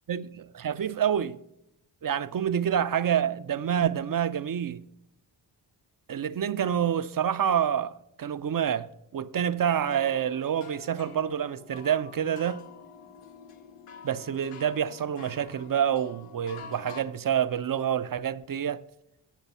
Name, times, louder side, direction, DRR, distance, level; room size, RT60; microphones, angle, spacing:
voice 1, 0.1-1.4 2.0-4.8 6.1-12.7 14.0-18.8, right 9 dB, 45° right, 0.5 m, -27 dB
sound 1, 9.7-17.0, left 6 dB, 85° left, 0.9 m, -48 dB
8.3 x 6.6 x 5.4 m
cardioid pair, 45°, 49 cm